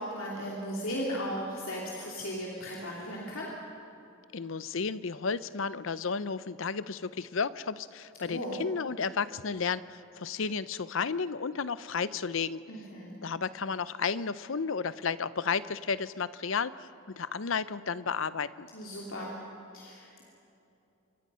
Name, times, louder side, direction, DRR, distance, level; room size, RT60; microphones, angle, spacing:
voice 1, 0.0-3.5 8.3-8.6 12.7-13.1 18.7-19.3 19.7-20.3, equal, 90° left, -3 dB, 3.0 m, -36 dB
voice 2, 4.3-12.6 13.2-18.7, left 5 dB, 75° left, 16 dB, 0.7 m, -32 dB
27.0 x 24.0 x 5.7 m, 2.8 s
head